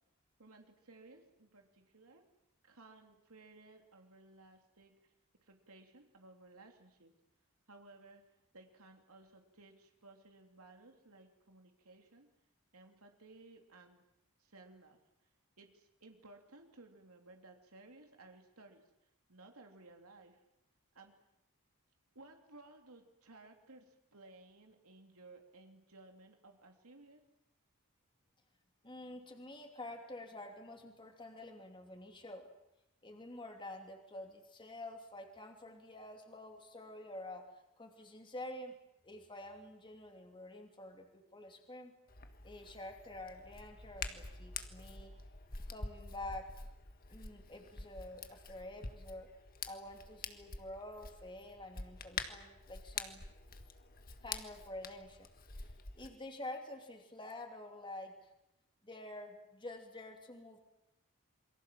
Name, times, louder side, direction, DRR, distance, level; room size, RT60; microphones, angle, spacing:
voice 1, 0.4-2.3 2.6-5.1 5.4-7.1 7.7-8.2 8.5-12.3 12.7-14.0 14.4-15.0 15.6-20.4 20.9-21.1 22.1-27.2, right 2 dB, 75° right, 4 dB, 3.2 m, -58 dB
voice 2, 28.8-32.5 33.0-37.4 37.8-38.7 39.0-41.9 42.4-45.1 45.7-46.7 47.1-49.3 49.7-53.2 54.2-55.3 55.6-55.7 56.0-58.3 58.8-60.6, left 1 dB, 20° left, 3 dB, 2.9 m, -48 dB
Hands, 42.1-56.1, left 4 dB, 40° left, 1.7 m, -47 dB
28.0 x 23.5 x 7.6 m, 0.87 s
head